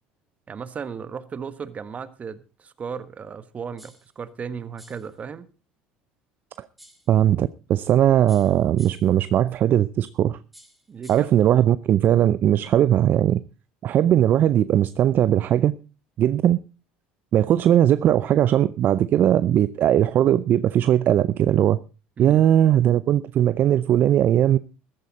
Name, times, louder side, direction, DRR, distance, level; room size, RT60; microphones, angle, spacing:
voice 1, 0.5-5.5 10.9-11.3 22.2-22.4, right 6 dB, 35° right, 1.5 m, -35 dB
sound 1, 3.8-4.1 4.8-5.1 6.8-7.1 8.3-9.2 10.5-11.4, equal, 5° right, 2.6 m, -51 dB
voice 2, 7.1-10.4 11.1-13.4 13.8-15.8 16.2-16.6 17.3-21.8 22.2-24.6, right 11 dB, 50° right, 0.6 m, -19 dB
14.5 x 12.5 x 4.2 m
supercardioid pair, 90°, 4 cm